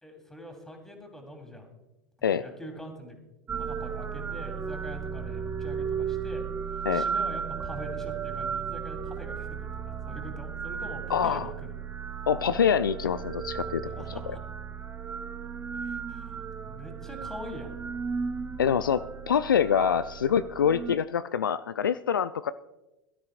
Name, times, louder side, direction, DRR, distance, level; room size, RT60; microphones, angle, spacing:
voice 1, 0.0-1.7 2.3-3.2 3.5-6.4 6.9-11.7 14.0-14.4 15.7-17.7, equal, 5° left, 2 dB, 2.9 m, -43 dB
sound 1, 3.5-21.0, right 6 dB, 15° right, 0.6 m, -35 dB
voice 2, 11.1-11.5 12.3-13.8 18.6-22.5, left 8 dB, 75° left, 14 dB, 0.4 m, -25 dB
21.5 x 12.5 x 2.4 m, 1.0 s
figure-of-eight pair, 85°, 11 cm